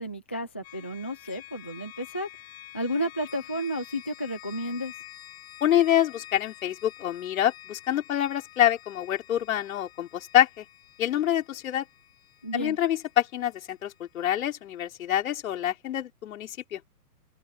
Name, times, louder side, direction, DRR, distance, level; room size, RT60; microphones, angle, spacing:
voice 1, 0.0-2.3 2.7-4.9 12.4-12.8, equal, 10° left, 0.4 m, -32 dB
sound 1, 0.6-14.4, left 14 dB, 40° left, 5.9 m, -48 dB
voice 2, 5.6-10.7 11.0-11.9 12.5-16.8, left 11 dB, 60° left, 5.2 m, -26 dB
open air
hypercardioid pair, 155°, 47 cm